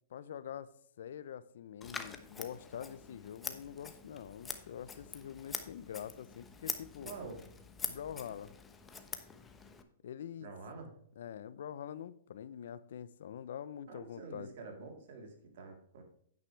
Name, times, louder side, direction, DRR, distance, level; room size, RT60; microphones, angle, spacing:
voice 1, 0.1-0.7 1.0-7.1 7.8-8.6 10.0-10.5 11.2-14.5, left 9 dB, 75° left, 0.7 m, -45 dB
Scissors, 1.8-9.8, left 5 dB, 15° left, 1.1 m, -45 dB
voice 2, 7.0-7.4 10.4-10.9 13.9-16.0, right 4 dB, 65° right, 3.6 m, -47 dB
9.9 x 9.1 x 3.4 m
hypercardioid pair, 130°, 0 cm